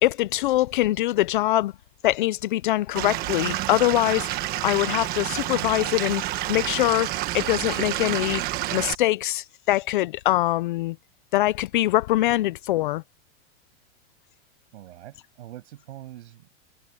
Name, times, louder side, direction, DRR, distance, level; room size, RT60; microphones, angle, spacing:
voice 1, 0.0-1.7 2.0-4.3 4.6-6.2 6.5-7.1 7.3-8.4 8.7-11.0 11.3-13.0, left 16 dB, 45° left, 0.5 m, -23 dB
Stream / Liquid, 3.0-9.0, right 16 dB, 25° right, 1.3 m, -29 dB
voice 2, 14.7-16.5, right 13 dB, 65° right, 7.1 m, -43 dB
supercardioid pair, 165°, 36 cm